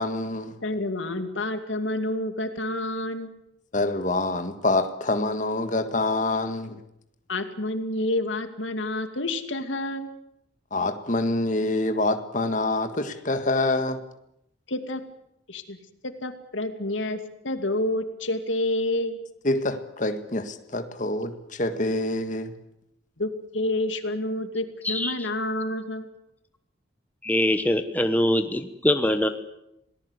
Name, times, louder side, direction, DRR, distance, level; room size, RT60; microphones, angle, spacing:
voice 1, 0.0-0.5 3.7-6.8 10.7-14.0 19.4-21.3 21.6-22.5, left 2 dB, 40° left, 7 dB, 1.7 m, -26 dB
voice 2, 0.6-3.3 7.3-10.1 14.7-15.0 15.5-15.8 16.0-17.2 17.4-19.2 23.2-26.1, left 1 dB, 85° left, 8 dB, 2.5 m, -28 dB
voice 3, 27.2-29.3, left 1 dB, 10° left, 7 dB, 1.1 m, -23 dB
27.5 x 18.5 x 8.2 m, 0.82 s
head